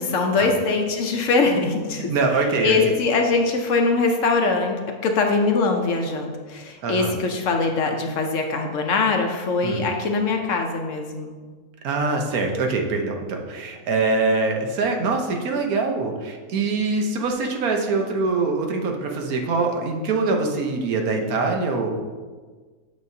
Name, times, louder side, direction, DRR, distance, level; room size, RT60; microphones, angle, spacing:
voice 1, 0.0-2.1 2.6-11.4, left 3 dB, 65° left, 3 dB, 0.9 m, -22 dB
voice 2, 1.9-2.9 6.8-7.2 9.6-9.9 11.8-21.9, right 3 dB, 75° right, 2 dB, 1.3 m, -24 dB
8.2 x 6.3 x 2.7 m, 1.4 s
omnidirectional pair, 1.6 m